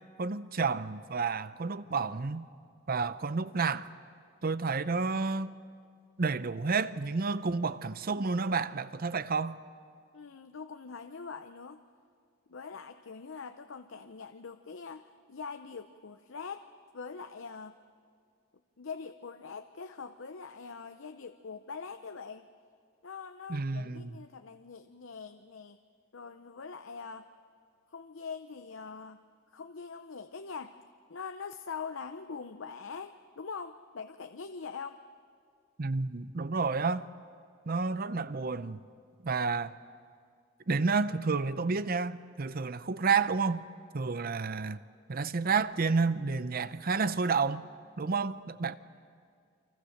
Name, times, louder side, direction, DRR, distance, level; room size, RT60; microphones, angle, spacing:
voice 1, 0.2-2.5 2.9-3.9 4.4-5.5 6.2-9.6 23.5-24.2 35.8-37.1 37.7-38.8 39.2-39.7 40.7-43.6 43.9-44.8 45.1-47.7 48.0-48.8, right 4 dB, 45° right, 0.7 m, -30 dB
voice 2, 10.1-11.8 12.5-16.7 16.9-17.8 18.8-22.5 23.0-25.8 26.1-27.3 27.9-29.2 29.5-30.8 31.1-35.0, left 5 dB, 70° left, 0.7 m, -43 dB
29.5 x 24.5 x 6.6 m
head